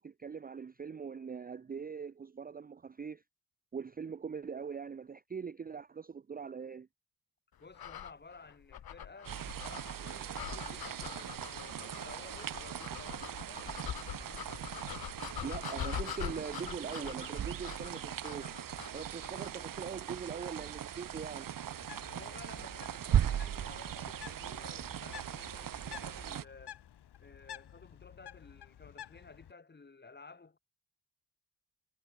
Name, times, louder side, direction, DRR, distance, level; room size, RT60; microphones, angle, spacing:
voice 1, 0.0-3.2 3.7-6.9 15.4-18.6 18.9-21.5, right 6 dB, 25° right, 0.6 m, -42 dB
voice 2, 7.6-13.8 22.0-26.8 27.2-30.6, left 4 dB, 25° left, 6.4 m, -54 dB
sound 1, 7.7-19.6, left 10 dB, 65° left, 2.1 m, -44 dB
sound 2, 9.2-26.4, right 9 dB, 55° right, 1.3 m, -38 dB
Bird, 21.7-29.5, left 11 dB, 90° left, 3.4 m, -52 dB
wide cardioid pair, 135°, 38 cm